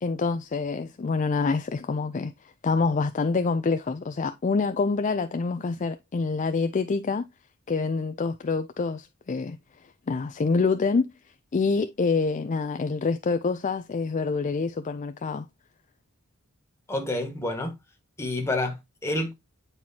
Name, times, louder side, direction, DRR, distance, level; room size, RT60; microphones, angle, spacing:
voice 1, 0.0-7.2 7.7-15.5, left 4 dB, 35° left, 0.4 m, -27 dB
voice 2, 16.9-17.8 18.2-19.3, left 2 dB, 10° left, 1.5 m, -28 dB
9.4 x 4.5 x 2.8 m
head